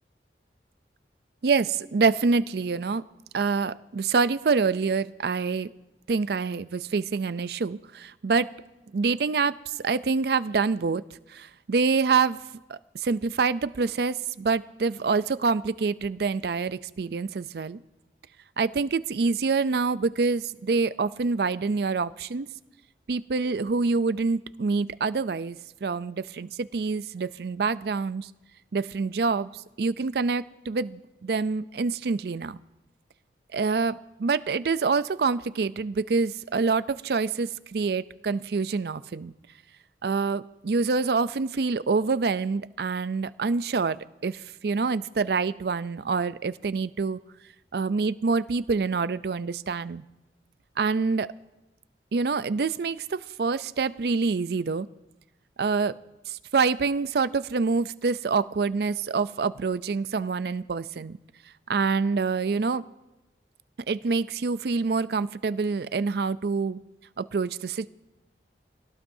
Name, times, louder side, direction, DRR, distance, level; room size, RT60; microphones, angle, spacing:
voice 1, 1.4-3.0 3.3-5.7 6.1-8.5 8.9-11.0 11.3-12.4 12.7-17.8 18.6-22.5 23.1-28.3 28.7-29.5 29.8-32.6 33.5-39.3 40.0-47.2 47.7-50.0 50.8-51.3 52.1-54.9 55.6-55.9 56.3-61.2 61.7-62.8 63.9-66.8 67.2-67.9, right 4 dB, 60° right, 15 dB, 0.4 m, -26 dB
22.0 x 17.5 x 2.7 m, 1.0 s
head